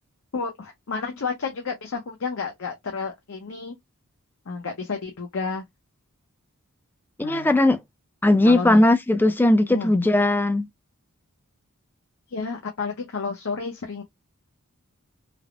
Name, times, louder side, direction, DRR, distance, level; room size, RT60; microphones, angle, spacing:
voice 1, 0.3-3.7 4.5-5.6 7.2-7.5 8.4-8.8 9.7-9.9 12.3-14.0, left 4 dB, 60° left, 0.6 m, -31 dB
voice 2, 7.2-7.8 8.2-10.7, left 1 dB, 10° left, 0.3 m, -18 dB
3.3 x 2.0 x 2.3 m
head